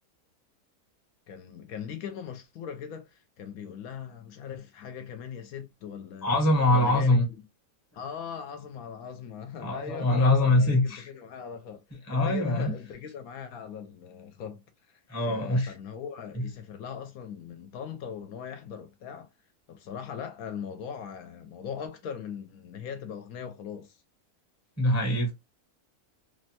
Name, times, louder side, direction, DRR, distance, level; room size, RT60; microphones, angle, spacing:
voice 1, 1.3-6.3 6.6-7.2 7.9-11.8 12.1-14.6 14.9-19.3 19.7-24.0, left 7 dB, 75° left, 1.0 m, -40 dB
voice 2, 6.2-7.2 9.6-11.1 12.1-12.7 15.1-15.7 16.3-16.4 24.8-25.3, left 2 dB, 15° left, 0.6 m, -23 dB
3.1 x 2.1 x 2.7 m
omnidirectional pair, 1.6 m